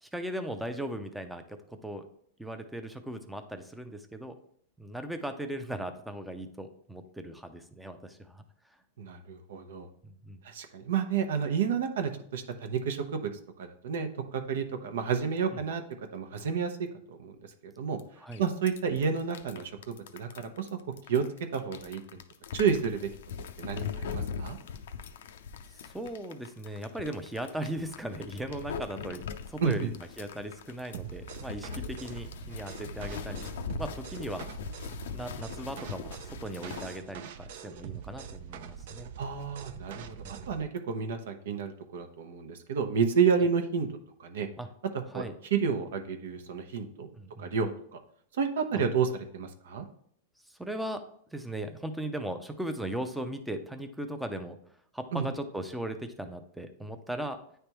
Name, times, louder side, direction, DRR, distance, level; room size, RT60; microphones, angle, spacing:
voice 1, 0.0-1.6 1.8-2.1 2.4-4.4 4.8-8.4 10.0-10.4 15.5-15.6 18.2-18.4 25.9-33.4 33.7-34.5 35.1-36.2 36.4-39.1 39.9-40.4 44.6-44.7 45.1-45.3 47.2-47.5 48.7-48.8 50.6-51.0 51.3-54.6 54.9-57.4, right 1 dB, 5° right, 7 dB, 0.5 m, -38 dB
voice 2, 9.0-9.9 10.4-13.3 13.6-15.8 16.1-17.4 17.6-18.0 18.4-20.7 21.1-21.2 21.5-22.2 22.5-23.1 23.6-24.6 29.6-29.9 39.2-43.9 44.2-44.5 44.9-47.1 47.4-48.0 48.4-49.8 55.1-55.3, right 6 dB, 80° right, 6 dB, 0.8 m, -30 dB
sound 1, 18.0-18.1 18.3-37.0, left 6 dB, 75° left, 0.5 m, -41 dB
sound 2, 30.9-40.6, right 7 dB, 60° right, 0.5 m, -44 dB
9.4 x 3.4 x 3.0 m, 0.66 s
supercardioid pair, 155°, 0 cm